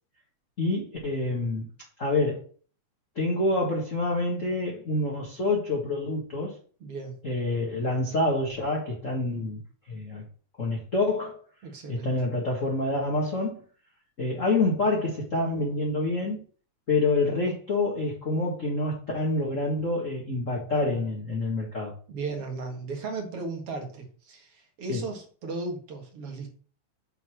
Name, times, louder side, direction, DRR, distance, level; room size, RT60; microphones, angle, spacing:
voice 1, 0.6-1.6 2.0-2.4 3.1-6.6 7.2-9.6 9.9-10.2 10.6-11.4 11.9-13.6 14.2-16.4 16.9-21.9 24.9-25.0, left 2 dB, 35° left, 1.4 m, -27 dB
voice 2, 6.8-7.2 11.6-12.1 22.1-26.5, right 3 dB, 55° right, 2.4 m, -36 dB
7.9 x 4.1 x 6.3 m
omnidirectional pair, 3.4 m